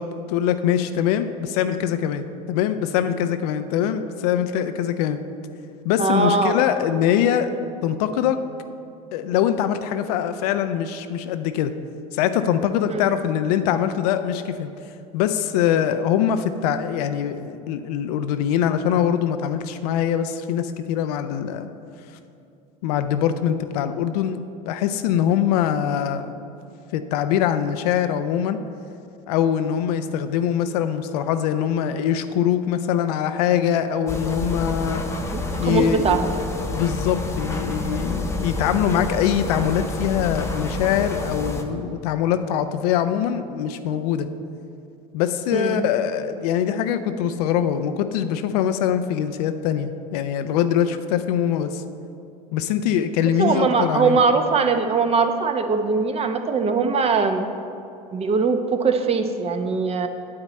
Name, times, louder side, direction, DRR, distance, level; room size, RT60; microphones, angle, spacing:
voice 1, 0.0-5.2 5.8-7.5 7.8-8.4 9.1-11.7 12.1-14.7 15.1-21.7 22.8-26.4 26.9-28.6 29.3-35.0 35.6-36.2 36.7-44.3 45.1-51.8 52.5-54.2, left 9 dB, 70° left, 9 dB, 0.5 m, -23 dB
voice 2, 6.0-6.6 12.9-13.1 35.3-36.3 45.5-45.9 53.4-57.5 58.1-60.1, right 4 dB, 30° right, 7 dB, 0.8 m, -21 dB
sound 1, 34.1-41.6, left 2 dB, 15° left, 0.9 m, -28 dB
8.7 x 8.0 x 4.2 m, 2.6 s
hypercardioid pair, 85°, 21 cm